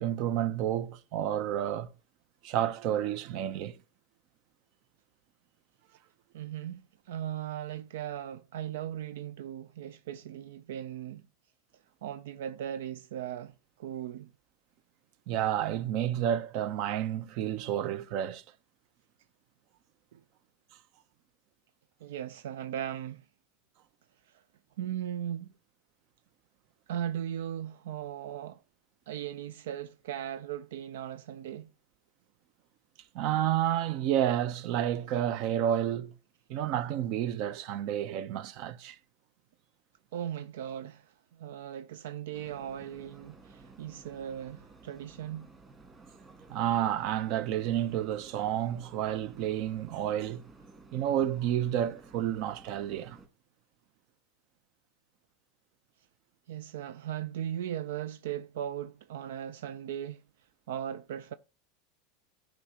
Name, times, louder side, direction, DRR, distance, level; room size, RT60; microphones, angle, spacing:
voice 1, 0.0-1.9 2.4-3.8 15.3-18.4 33.1-36.1 36.5-39.0 46.5-50.4 50.9-53.2, right 11 dB, 55° right, 0.7 m, -30 dB
voice 2, 6.3-11.2 12.0-14.3 20.1-20.2 22.0-23.3 24.3-24.4 24.8-25.5 26.9-28.6 29.1-31.7 40.1-45.5 56.5-60.2 60.7-61.3, right 10 dB, 85° right, 0.4 m, -38 dB
sound 1, 42.3-53.3, right 3 dB, 20° right, 2.6 m, -54 dB
13.5 x 5.1 x 2.9 m
supercardioid pair, 130°, 0 cm